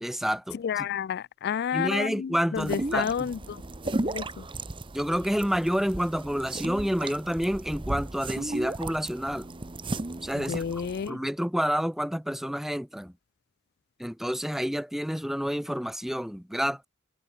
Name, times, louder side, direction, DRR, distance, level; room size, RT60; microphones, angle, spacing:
voice 1, 0.0-0.9 1.7-3.3 4.9-9.5 10.2-13.1 14.0-16.9, equal, ahead, 0.6 m, -29 dB
voice 2, 0.5-4.5 10.4-11.2, left 7 dB, 50° left, 0.4 m, -31 dB
sound 1, 2.6-11.1, right 2 dB, 25° right, 0.9 m, -35 dB
head